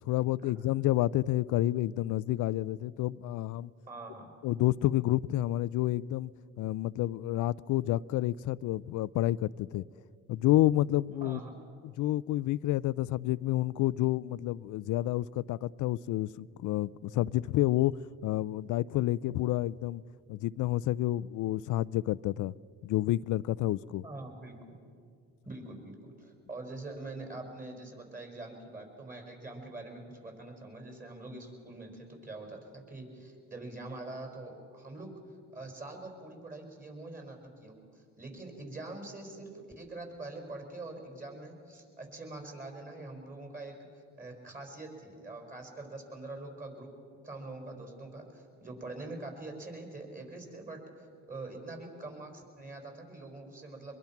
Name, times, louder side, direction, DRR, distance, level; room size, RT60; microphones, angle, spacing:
voice 1, 0.0-3.7 4.4-6.3 6.6-9.8 10.3-11.4 11.8-17.9 18.2-20.0 20.3-22.5 22.8-24.0, left 15 dB, 80° left, 20 dB, 0.5 m, -29 dB
voice 2, 3.9-4.3 11.2-11.6 24.0-24.6 25.5-35.2 35.5-46.9 47.2-54.0, right 2 dB, 25° right, 2 dB, 5.4 m, -44 dB
23.5 x 22.0 x 5.9 m, 2.3 s
cardioid pair, 90°, 30 cm